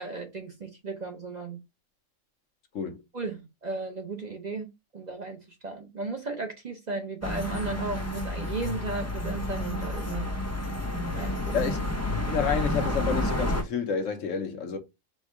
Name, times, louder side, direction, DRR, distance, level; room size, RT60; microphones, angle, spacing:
voice 1, 0.0-1.6 3.1-4.7 4.9-10.3 11.1-11.6, right 3 dB, 40° right, 0.8 m, -35 dB
sound 1, 7.2-13.6, left 1 dB, 25° left, 0.3 m, -30 dB
voice 2, 12.3-14.8, left 6 dB, 75° left, 1.1 m, -29 dB
4.4 x 2.2 x 4.6 m
omnidirectional pair, 1.4 m